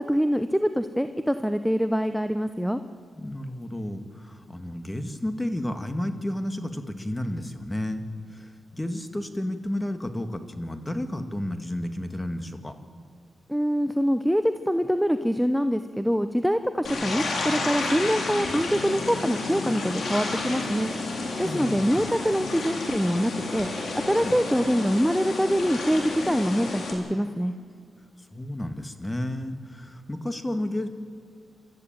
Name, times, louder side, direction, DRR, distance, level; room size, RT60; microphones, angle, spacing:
voice 1, 0.0-2.8 13.5-20.9 21.4-23.7 24.1-27.5, equal, ahead, 9 dB, 0.8 m, -24 dB
voice 2, 3.2-8.1 8.3-8.5 8.8-12.7 21.4-22.0 24.2-24.3 28.3-30.9, left 1 dB, 15° left, 8 dB, 2.1 m, -32 dB
sound 1, 16.8-26.9, left 3 dB, 70° left, 4.2 m, -31 dB
30.0 x 13.5 x 9.0 m, 2.2 s
cardioid pair, 75°, 0 cm